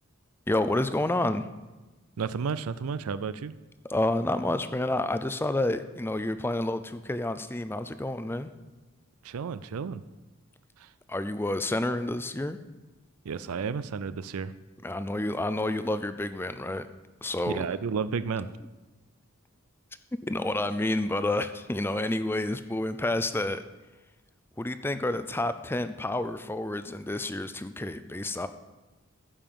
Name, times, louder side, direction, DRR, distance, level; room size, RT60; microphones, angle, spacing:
voice 1, 0.5-1.5 3.9-8.5 11.1-12.6 14.8-16.9 17.2-17.7 20.3-23.6 24.6-28.5, left 1 dB, 10° left, 11 dB, 0.4 m, -29 dB
voice 2, 2.2-3.5 9.2-10.0 10.8-10.9 13.3-14.5 17.5-18.5, right 5 dB, 85° right, 14 dB, 0.4 m, -32 dB
14.0 x 5.6 x 6.9 m, 1.2 s
head